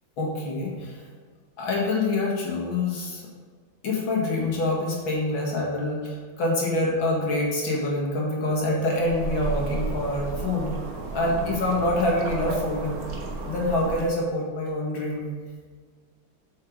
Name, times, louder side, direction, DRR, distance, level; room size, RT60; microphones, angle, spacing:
voice 1, 0.2-1.0 1.6-3.2 3.8-10.8 11.1-13.0 13.4-15.3, left 2 dB, 75° left, -3 dB, 2.4 m, -26 dB
sound 1, 9.0-14.0, right 3 dB, 45° right, 1.4 m, -33 dB
7.9 x 5.7 x 5.1 m, 1.5 s
omnidirectional pair, 2.2 m